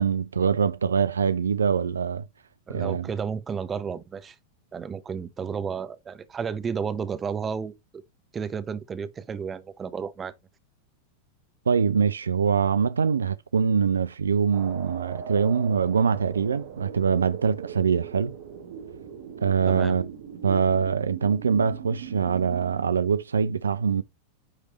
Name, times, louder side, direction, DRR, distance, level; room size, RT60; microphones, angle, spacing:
voice 1, 0.0-2.3 2.7-3.1 11.7-18.3 19.4-20.1 20.4-24.0, right 6 dB, 70° right, 0.3 m, -23 dB
voice 2, 2.7-4.4 4.7-7.7 8.3-10.3 19.7-20.0, right 6 dB, 20° right, 0.7 m, -32 dB
sound 1, 14.5-22.9, right 7 dB, 55° right, 1.3 m, -40 dB
9.8 x 3.3 x 2.9 m
figure-of-eight pair, 90°, 0 cm